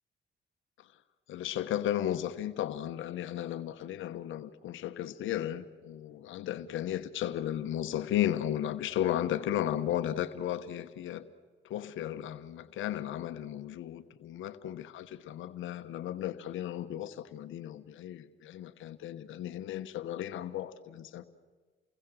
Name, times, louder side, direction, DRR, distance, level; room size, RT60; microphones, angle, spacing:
voice 1, 1.3-11.2 11.6-21.2, left 11 dB, 80° left, 1.1 m, -35 dB
29.5 x 21.0 x 7.6 m
cardioid pair, 90°, 20 cm